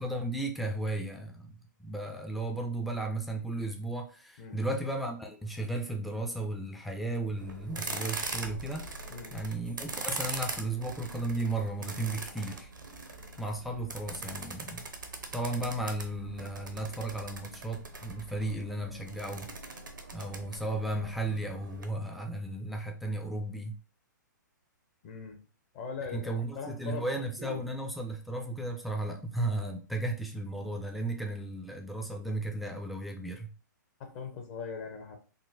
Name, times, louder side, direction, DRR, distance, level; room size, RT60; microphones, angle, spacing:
voice 1, 0.0-9.0 9.3-12.7 13.4-14.9 15.3-19.5 20.1-23.8 26.1-33.5, right 2 dB, ahead, 0.3 m, -35 dB
sound 1, 7.4-21.8, right 3 dB, 90° right, 0.6 m, -41 dB
voice 2, 25.0-25.4 25.7-27.6 34.0-35.2, left 5 dB, 40° left, 0.8 m, -41 dB
3.7 x 2.1 x 2.5 m
hypercardioid pair, 125°, 10 cm